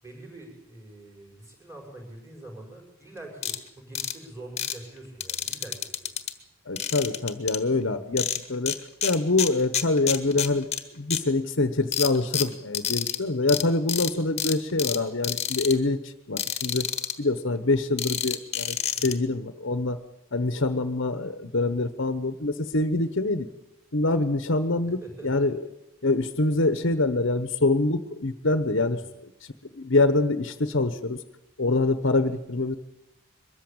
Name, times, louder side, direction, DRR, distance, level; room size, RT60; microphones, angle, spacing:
voice 1, 0.0-6.2 7.8-8.1 18.9-19.2 24.8-25.5 28.8-29.1, right 1 dB, 10° right, 0 dB, 6.0 m, -45 dB
sound 1, 3.4-3.6 3.9-4.1 4.6-4.7 5.2-6.3 6.8-7.6 8.2-8.8 9.0-10.8 11.1-11.2 11.9-13.2 13.5-13.6 13.9-14.1 14.4-15.0 15.2-15.7 16.4-17.1 18.0-19.1, left 9 dB, 30° left, 1.4 m, -28 dB
voice 2, 6.7-8.7 9.0-10.7 10.9-16.9 17.2-18.8 19.0-20.0 20.3-23.5 23.9-25.6 26.0-29.0 29.7-31.2 31.6-32.8, left 2 dB, 60° left, 11 dB, 1.0 m, -25 dB
22.5 x 14.0 x 8.8 m, 0.89 s
head